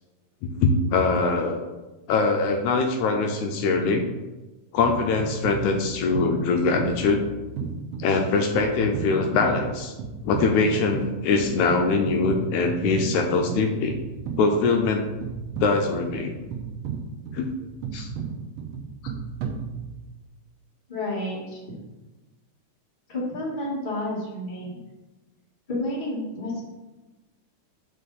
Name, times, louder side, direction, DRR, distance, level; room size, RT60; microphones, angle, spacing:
voice 1, 0.4-1.6 2.1-4.1 4.7-7.2 8.0-9.9 10.2-13.9 14.4-15.1 15.6-16.4 17.3-17.5 17.9-18.1, left 4 dB, 80° left, 4 dB, 1.9 m, -23 dB
sound 1, 4.8-20.2, right 6 dB, 70° right, 1.6 m, -35 dB
voice 2, 20.9-21.7 23.1-24.8 25.7-26.7, left 1 dB, 25° left, -4 dB, 1.2 m, -30 dB
7.4 x 5.1 x 4.1 m, 1.1 s
omnidirectional pair, 3.5 m